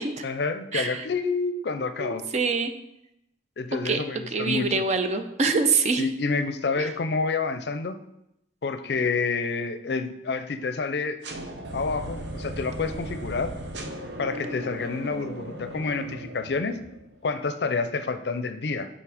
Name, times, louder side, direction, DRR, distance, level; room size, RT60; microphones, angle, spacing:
voice 1, 0.2-2.3 3.6-4.8 6.0-8.0 8.6-11.2 11.7-13.5 14.2-16.8 17.2-18.9, left 4 dB, 65° left, 10 dB, 0.5 m, -28 dB
voice 2, 2.0-2.7 3.8-4.0 4.3-6.1 6.8-6.9, right 4 dB, 40° right, 8 dB, 0.5 m, -25 dB
sound 1, 11.2-17.2, equal, 75° right, 0.8 m, -37 dB
5.9 x 4.2 x 4.8 m, 0.82 s
head